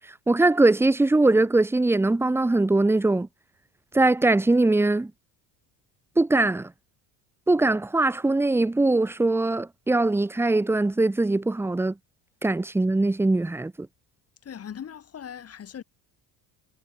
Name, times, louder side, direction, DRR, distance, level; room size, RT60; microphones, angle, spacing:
voice 1, 0.3-3.3 3.9-5.1 6.2-6.7 7.5-11.9 12.4-13.9, right 2 dB, 5° right, 0.7 m, -21 dB
voice 2, 14.4-15.8, left 8 dB, 35° left, 1.5 m, -39 dB
supercardioid pair, 85°, 41 cm